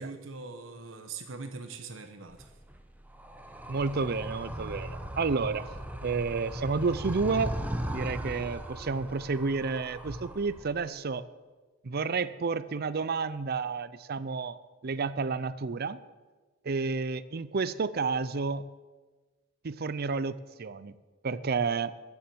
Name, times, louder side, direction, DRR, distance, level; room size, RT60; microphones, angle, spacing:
voice 1, 0.0-2.5, right 4 dB, 75° right, 7 dB, 1.0 m, -42 dB
Animal, 2.3-10.9, right 1 dB, 10° right, 1.0 m, -38 dB
voice 2, 3.7-5.7 6.0-7.5 7.9-11.2 11.8-14.6 14.8-16.0 16.6-18.6 19.6-20.9 21.2-21.9, right 4 dB, 50° right, 16 dB, 0.5 m, -30 dB
14.0 x 7.2 x 7.8 m, 1.3 s
head